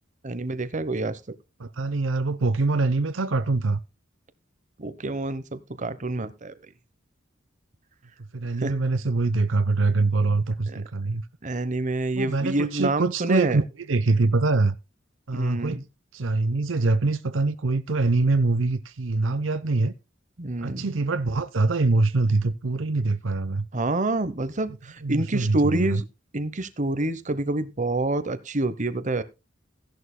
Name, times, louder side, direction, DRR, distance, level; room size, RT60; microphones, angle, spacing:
voice 1, 0.2-1.2 4.8-6.6 8.6-8.7 10.7-10.8 11.4-13.6 15.3-15.8 20.4-20.9 23.7-26.0 26.3-29.2, right 2 dB, 40° right, 1.0 m, -27 dB
voice 2, 1.6-3.8 8.3-11.2 12.1-14.8 15.3-15.8 16.1-19.9 20.6-23.6 25.0-26.0, right 3 dB, 75° right, 0.7 m, -24 dB
15.5 x 11.0 x 2.2 m
head